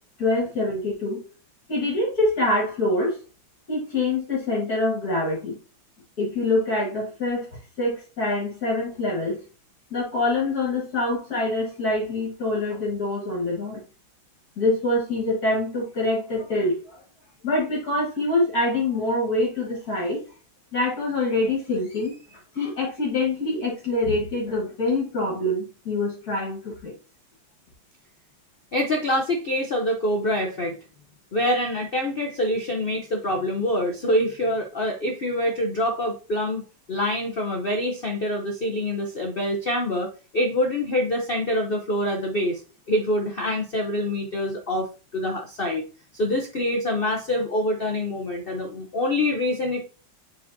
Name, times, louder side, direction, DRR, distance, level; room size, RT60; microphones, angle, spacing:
voice 1, 0.2-1.2 1.7-3.2 3.7-5.6 6.2-7.5 7.8-9.4 9.9-13.8 14.6-17.0 17.4-20.2 20.7-26.9, left 2 dB, 55° left, 2.0 m, -25 dB
voice 2, 28.7-30.8 31.3-36.6 36.9-42.6 42.9-45.9 46.1-49.8, left 1 dB, 75° left, 0.5 m, -25 dB
7.7 x 4.7 x 2.7 m
omnidirectional pair, 2.1 m